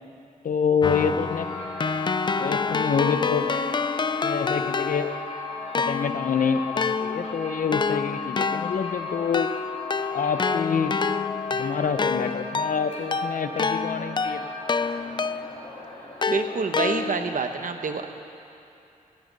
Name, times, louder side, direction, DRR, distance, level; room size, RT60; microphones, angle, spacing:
voice 1, 0.4-1.5 2.4-3.4 4.2-5.1 5.8-9.5 10.1-11.0 11.5-14.4, left 6 dB, 75° left, 9 dB, 0.8 m, -26 dB
Keyboard (musical), 0.8-5.3 5.7-15.7 16.2-17.4, left 4 dB, 35° left, 0.4 m, -28 dB
sound 1, 1.1-17.5, left 4 dB, 55° left, 3.7 m, -36 dB
voice 2, 16.3-18.1, right 4 dB, 70° right, 6 dB, 1.1 m, -27 dB
16.5 x 14.0 x 5.4 m, 2.7 s
cardioid pair, 70°, 14 cm